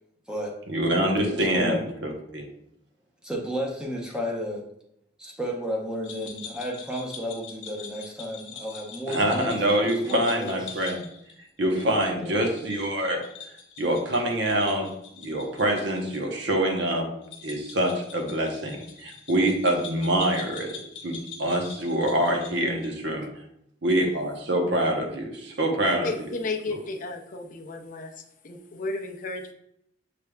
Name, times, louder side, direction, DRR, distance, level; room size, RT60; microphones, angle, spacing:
voice 1, 0.7-2.4 9.1-11.0 11.6-13.2 13.8-14.9 15.2-17.1 17.4-20.8 21.0-23.3 23.8-26.1, right 1 dB, 65° right, 2 dB, 0.9 m, -25 dB
voice 2, 1.5-1.8 3.2-4.6 5.2-10.9 12.2-12.5, equal, 5° right, -1 dB, 0.8 m, -33 dB
sound 1, 6.0-16.2 16.5-16.6 17.2-23.0, left 6 dB, 80° left, 1.1 m, -44 dB
voice 3, 26.0-29.5, left 3 dB, 45° left, 3 dB, 0.5 m, -33 dB
6.5 x 3.3 x 2.3 m, 0.75 s
head